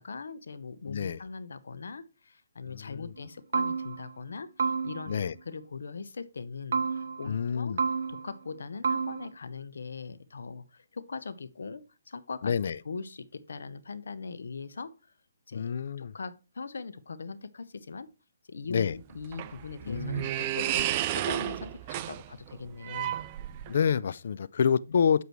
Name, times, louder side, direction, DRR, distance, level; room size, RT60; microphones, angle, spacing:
voice 1, 0.0-5.1 5.4-7.7 8.1-14.9 15.5-18.1 18.5-23.2 24.9-25.0, left 4 dB, 80° left, 0.8 m, -41 dB
voice 2, 0.9-1.2 2.7-3.1 5.1-5.3 7.3-7.8 12.4-12.8 15.5-16.1 18.7-18.9 19.9-20.3 23.7-25.2, left 7 dB, 60° left, 0.4 m, -28 dB
sound 1, 3.2-3.3 3.5-4.2 4.6-5.3 6.7-7.4 7.8-8.5 8.8-9.3, right 5 dB, 65° right, 0.7 m, -30 dB
sound 2, 18.9-23.9, right 13 dB, 30° right, 0.4 m, -32 dB
8.2 x 6.1 x 3.1 m
hypercardioid pair, 160°, 0 cm